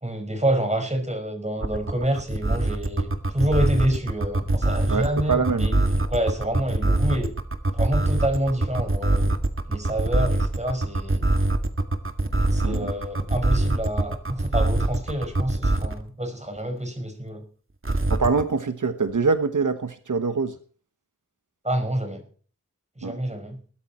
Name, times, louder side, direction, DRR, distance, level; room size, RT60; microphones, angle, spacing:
voice 1, 0.0-7.3 7.7-9.4 9.7-11.3 12.5-17.4 21.6-22.2 23.0-23.6, right 1 dB, 20° right, 5.4 m, -27 dB
sound 1, 1.6-16.0 17.8-18.4, right 2 dB, 45° right, 2.0 m, -23 dB
voice 2, 4.9-5.7 12.6-12.9 18.1-20.6 23.0-23.2, right 4 dB, 85° right, 1.2 m, -24 dB
18.5 x 13.0 x 4.4 m
wide cardioid pair, 65°, 30 cm